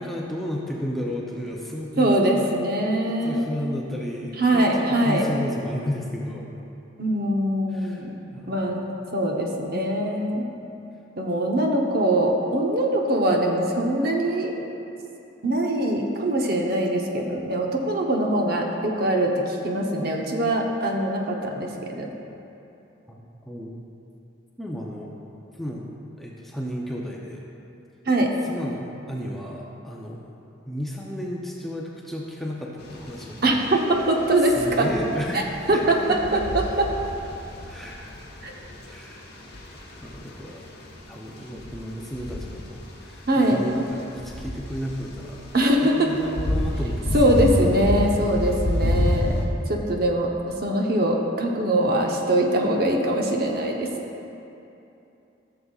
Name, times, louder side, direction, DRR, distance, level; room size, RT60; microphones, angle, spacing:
voice 1, 0.0-2.2 3.0-6.4 7.7-8.7 23.1-23.2 23.5-23.7 24.6-25.1 25.6-25.8 26.2-27.4 28.4-30.2 30.6-35.4 35.7-36.5 37.6-38.1 38.9-39.5 40.0-40.6 41.1-47.2, equal, ahead, -3 dB, 0.6 m, -33 dB
voice 2, 2.0-3.4 4.4-5.3 7.0-8.1 8.5-8.8 9.1-10.4 11.2-14.7 15.4-22.1 28.1-28.3 33.4-34.9 35.3-35.4 35.7-36.9 38.4-38.5 43.3-43.6 45.5-46.1 47.1-49.3 49.7-50.3 50.6-53.9, right 1 dB, 50° right, 0 dB, 0.8 m, -22 dB
sound 1, 32.8-49.5, left 1 dB, 50° left, 1.1 m, -30 dB
14.5 x 6.8 x 2.4 m, 2.8 s
head